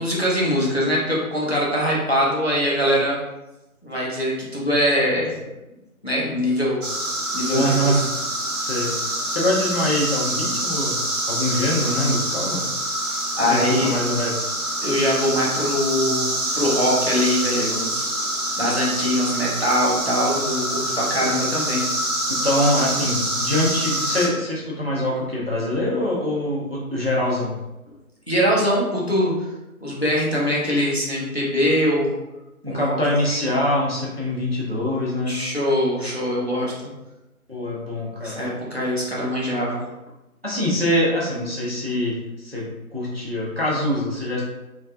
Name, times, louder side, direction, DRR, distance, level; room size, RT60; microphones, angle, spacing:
voice 1, 0.0-3.2 3.8-5.3 6.0-6.8 7.3-8.0 13.4-13.9 14.8-18.1 18.6-21.9 28.3-29.3 29.8-32.2 32.7-33.0 33.3-33.5 35.3-36.9 38.2-39.8, equal, 45° left, -5 dB, 0.7 m, -22 dB
sound 1, 6.8-24.3, right 1 dB, 90° right, 1.0 m, -26 dB
voice 2, 7.5-8.1 8.6-8.9 9.3-11.0 11.3-12.7 13.5-14.3 22.3-27.5 32.6-35.4 37.5-38.4 40.4-42.6 42.9-44.4, left 1 dB, 45° right, -5 dB, 0.6 m, -24 dB
3.4 x 2.1 x 2.4 m, 0.99 s
figure-of-eight pair, 175°, 44 cm